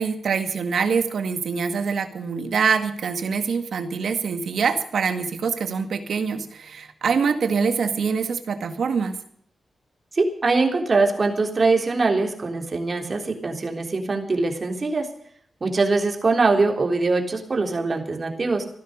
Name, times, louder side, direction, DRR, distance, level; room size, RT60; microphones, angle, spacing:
voice 1, 0.0-9.2, right 5 dB, 75° right, 8 dB, 1.9 m, -24 dB
voice 2, 10.1-15.1 15.6-18.7, right 3 dB, 45° right, 3 dB, 3.5 m, -22 dB
15.5 x 12.5 x 6.6 m, 0.64 s
cardioid pair, 65°, 0 cm